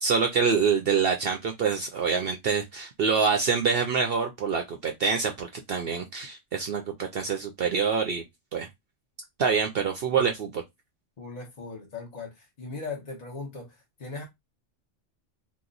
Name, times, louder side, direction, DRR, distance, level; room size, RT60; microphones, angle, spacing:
voice 1, 0.0-8.2 8.5-8.7 9.4-10.6, right 5 dB, 60° right, 0.7 m, -26 dB
voice 2, 11.2-14.2, left 4 dB, 40° left, 0.8 m, -38 dB
2.9 x 2.1 x 3.8 m
omnidirectional pair, 1.3 m